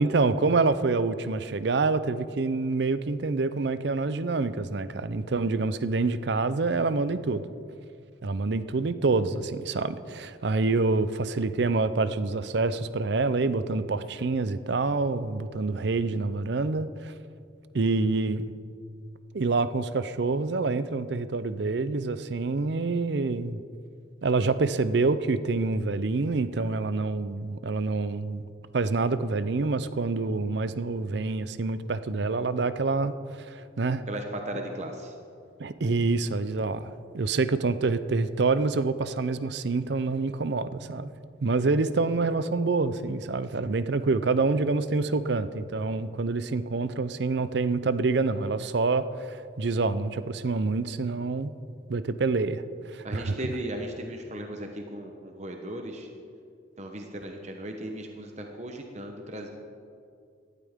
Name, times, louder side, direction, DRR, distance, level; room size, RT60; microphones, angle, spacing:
voice 1, 0.0-7.5 8.2-17.1 17.7-18.5 19.3-23.6 24.2-28.5 28.7-33.1 33.5-34.0 35.6-41.1 41.4-51.5 51.9-53.5, right 3 dB, 60° right, 13 dB, 0.5 m, -27 dB
voice 2, 34.1-35.1 53.0-56.1 56.8-59.5, right 1 dB, 35° right, 3 dB, 0.9 m, -36 dB
17.5 x 12.0 x 3.6 m, 2.4 s
head